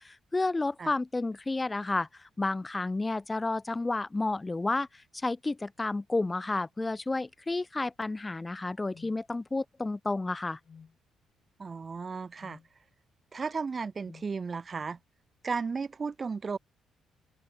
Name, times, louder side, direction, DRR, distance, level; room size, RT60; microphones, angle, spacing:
voice 1, 0.0-2.1 2.4-4.9 5.2-10.6, left 2 dB, 15° left, 0.4 m, -31 dB
sound 1, 8.9-9.2 10.6-11.0 12.4-12.7 14.0-14.3, left 6 dB, 35° left, 3.3 m, -53 dB
voice 2, 11.6-12.6 13.3-15.0 15.4-16.6, right 5 dB, 25° right, 2.5 m, -34 dB
cardioid pair, 150°, 0 cm